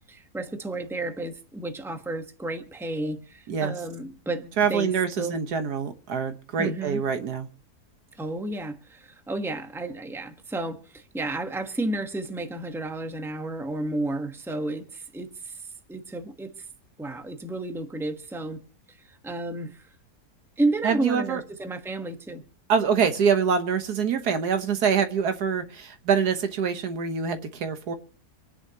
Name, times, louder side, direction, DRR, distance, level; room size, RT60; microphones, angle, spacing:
voice 1, 0.1-4.9 5.2-5.4 6.6-7.0 8.2-16.7 17.0-18.6 18.9-19.9 20.6-22.4, right 2 dB, ahead, 1.1 m, -32 dB
voice 2, 4.6-7.5 20.8-21.4 22.7-28.0, right 6 dB, 80° right, 1.7 m, -25 dB
26.5 x 10.0 x 2.9 m
omnidirectional pair, 1.7 m